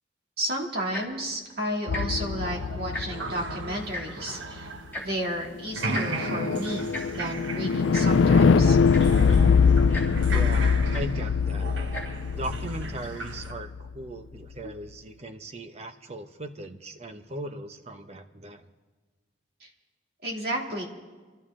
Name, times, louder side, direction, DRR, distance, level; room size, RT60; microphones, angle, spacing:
voice 1, 0.4-4.7 5.0-8.8 19.6-19.7 20.2-20.8, right 1 dB, 55° right, -1 dB, 2.6 m, -32 dB
Tick-tock, 0.8-1.2 1.9-2.0 2.4-2.5 2.8-3.3 3.9-4.0 4.9-5.1 5.9-6.1 6.9-7.0 7.9-8.1 8.6-8.7 8.9-9.2 9.9-10.1 10.9-11.0 11.8-12.0 12.7-12.8, left 2 dB, 10° left, 3.1 m, -35 dB
sound 1, 1.9-4.0 5.9-13.9, left 5 dB, 85° left, 0.4 m, -23 dB
sound 2, 2.4-5.4 5.7-13.5, right 3 dB, 85° right, 1.4 m, -37 dB
voice 2, 10.3-11.7 12.3-18.7, right 1 dB, 35° right, 7 dB, 0.9 m, -38 dB
27.0 x 13.0 x 3.8 m, 1.4 s
head